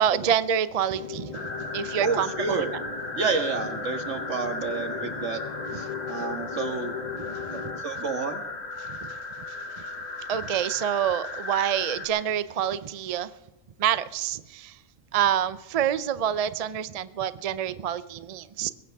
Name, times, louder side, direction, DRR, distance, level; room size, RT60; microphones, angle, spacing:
voice 1, 0.0-1.5 1.7-2.7 5.7-5.8 7.2-7.4 8.8-9.2 9.5-9.9 10.2-13.3 13.8-14.8 15.1-18.7, right 9 dB, 75° right, 0.3 m, -27 dB
sound 1, 0.9-7.8, left 5 dB, 35° left, 0.7 m, -37 dB
sound 2, 1.3-12.1, left 3 dB, 50° left, 1.7 m, -36 dB
voice 2, 2.0-2.7 3.1-5.4 5.7-6.9 7.5-8.5, right 4 dB, 60° right, 1.8 m, -30 dB
21.5 x 16.5 x 3.5 m
omnidirectional pair, 1.4 m